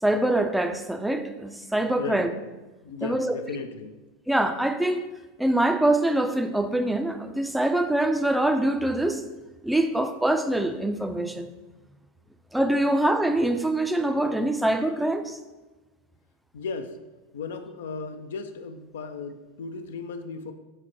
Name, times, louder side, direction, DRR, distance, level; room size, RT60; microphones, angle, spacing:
voice 1, 0.0-2.3 3.0-3.3 4.3-5.0 5.4-9.2 9.6-11.5 12.5-15.4, right 1 dB, 5° right, 7 dB, 0.3 m, -24 dB
voice 2, 2.8-4.0 16.5-17.0 17.3-20.5, left 5 dB, 70° left, 8 dB, 0.3 m, -35 dB
5.7 x 2.1 x 4.3 m, 1.2 s
hypercardioid pair, 85°, 0 cm